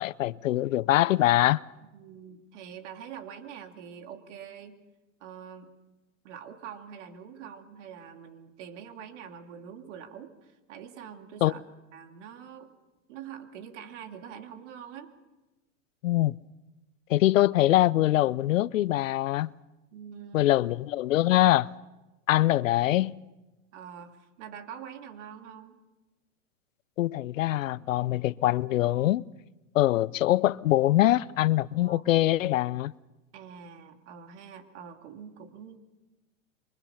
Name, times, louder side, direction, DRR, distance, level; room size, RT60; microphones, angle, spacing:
voice 1, 0.0-1.6 11.4-11.5 16.0-16.4 17.1-19.5 20.3-21.7 22.3-23.2 27.0-29.2 29.7-32.9, left 15 dB, 85° left, 0.7 m, -23 dB
voice 2, 1.9-4.8 5.2-5.7 6.2-11.6 11.9-12.7 13.1-15.2 19.9-20.5 22.4-22.5 23.7-25.8 31.8-32.0 33.3-35.8, right 8 dB, 65° right, 2.8 m, -45 dB
28.0 x 24.0 x 5.8 m
hypercardioid pair, 125°, 38 cm